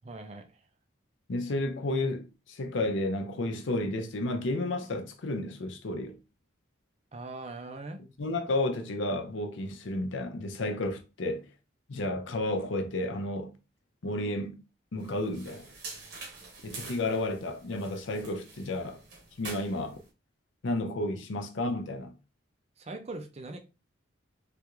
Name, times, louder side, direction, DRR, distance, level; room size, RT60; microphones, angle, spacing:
voice 1, 0.0-0.6 7.1-8.0 22.8-23.6, right 2 dB, 30° right, 0.5 m, -41 dB
voice 2, 1.3-6.2 8.2-11.5 11.9-13.6 14.0-14.6 14.9-15.7 16.6-19.0 19.4-20.0 20.6-22.1, left 2 dB, 70° left, 0.6 m, -32 dB
sound 1, 15.0-20.1, right 3 dB, 55° right, 1.0 m, -46 dB
3.4 x 2.4 x 3.0 m
head